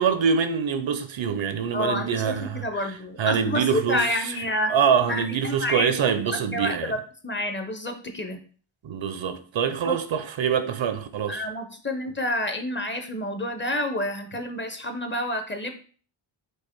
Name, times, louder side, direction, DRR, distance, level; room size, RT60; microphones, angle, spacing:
voice 1, 0.0-2.9 3.2-4.4 4.7-6.9 8.8-11.4, right 7 dB, 65° right, 0.6 m, -25 dB
voice 2, 1.7-4.7 5.1-5.9 6.3-8.4 9.8-9.9 11.3-15.7, left 1 dB, 25° left, 0.7 m, -29 dB
4.6 x 2.5 x 4.4 m
wide cardioid pair, 90°, 49 cm